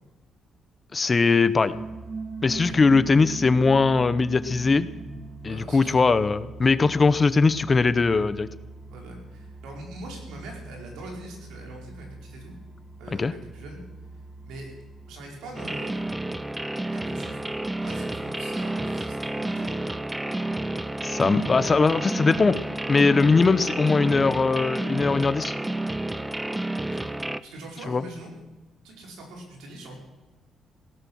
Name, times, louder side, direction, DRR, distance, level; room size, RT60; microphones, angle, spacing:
voice 1, 0.9-1.7 2.4-4.9 5.4-8.5 13.2-13.3 21.0-22.5 22.9-25.5 27.9-28.0, left 4 dB, 30° left, 15 dB, 0.8 m, -20 dB
sound 1, 1.7-21.6, right 3 dB, 25° right, 2.1 m, -42 dB
voice 2, 5.4-6.0 8.9-12.5 13.0-13.8 14.4-14.7 15.1-16.0 16.9-17.4 17.8-19.8 26.9-27.1 27.4-28.3 28.8-30.0, right 1 dB, 90° right, 0 dB, 5.1 m, -42 dB
sound 2, 15.5-27.4, right 1 dB, 10° right, 0.6 m, -30 dB
17.0 x 13.0 x 6.4 m, 1.1 s
cardioid pair, 90°, 0 cm